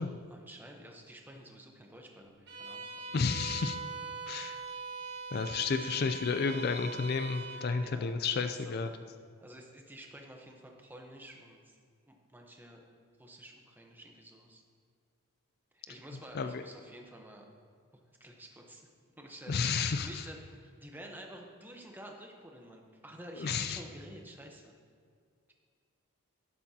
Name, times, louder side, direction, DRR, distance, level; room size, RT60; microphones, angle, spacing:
voice 1, 0.0-3.2 5.3-6.0 7.5-8.1 8.4-8.8 9.4-11.8 12.1-12.8 13.2-14.6 15.7-17.5 18.2-18.9 19.2-24.7, right 1 dB, 10° right, 1 dB, 0.9 m, -51 dB
Bowed string instrument, 2.5-7.7, right 4 dB, 50° right, 1.6 m, -42 dB
voice 2, 3.1-3.8 4.3-4.6 5.3-8.9 16.3-16.6 19.5-20.2 23.4-23.8, left 5 dB, 45° left, 8 dB, 0.4 m, -31 dB
12.0 x 11.0 x 2.9 m, 2.2 s
head